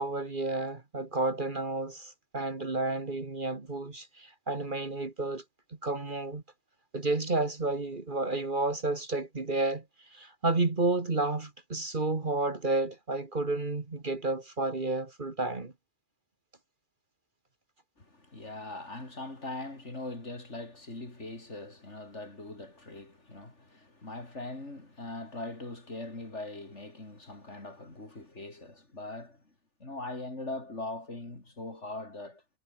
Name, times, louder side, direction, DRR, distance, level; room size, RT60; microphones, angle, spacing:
voice 1, 0.0-5.4 5.8-6.4 6.9-9.8 10.1-15.7, right 2 dB, 40° right, 2.0 m, -31 dB
voice 2, 18.0-29.5 29.8-32.4, left 2 dB, 60° left, 4.9 m, -41 dB
omnidirectional pair, 1.4 m